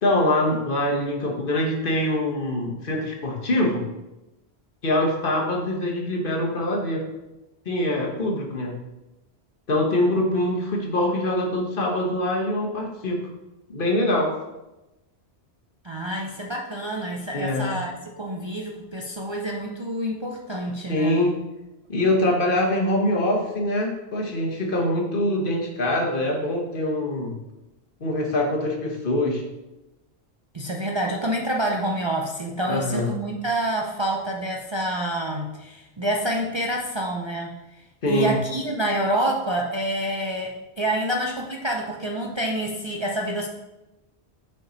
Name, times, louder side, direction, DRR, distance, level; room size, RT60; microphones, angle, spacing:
voice 1, 0.0-3.8 4.8-7.0 7.6-8.7 9.7-13.2 13.7-14.3 17.3-17.7 20.9-21.4 21.9-27.3 28.0-29.4 32.7-33.1 38.0-38.4, left 1 dB, 55° left, 0 dB, 1.3 m, -24 dB
voice 2, 15.8-21.3 30.5-37.5 38.1-43.5, right 1 dB, 35° right, -1 dB, 0.5 m, -27 dB
5.5 x 5.0 x 3.9 m, 0.98 s
omnidirectional pair, 1.1 m